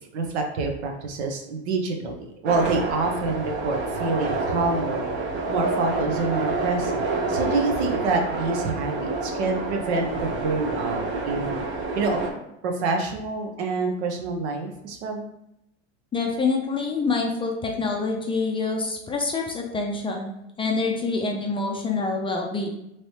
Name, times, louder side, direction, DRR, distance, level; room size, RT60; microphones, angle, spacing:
voice 1, 0.1-5.0 5.5-11.6 12.0-12.2 12.6-15.3, right 3 dB, 75° right, 3 dB, 0.8 m, -27 dB
sound 1, 2.5-12.3, right 3 dB, 35° right, 0.7 m, -28 dB
voice 2, 16.1-22.7, left 3 dB, 15° left, 1 dB, 0.4 m, -26 dB
3.1 x 3.0 x 2.8 m, 0.83 s
hypercardioid pair, 105°, 34 cm